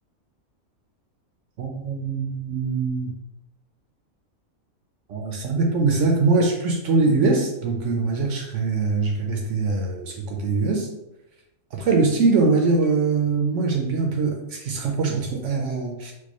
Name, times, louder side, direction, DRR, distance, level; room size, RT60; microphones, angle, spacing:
voice 1, 1.6-3.2 5.1-10.9 11.7-16.1, right 4 dB, 65° right, 1 dB, 0.9 m, -22 dB
4.6 x 2.2 x 2.9 m, 0.89 s
omnidirectional pair, 1.4 m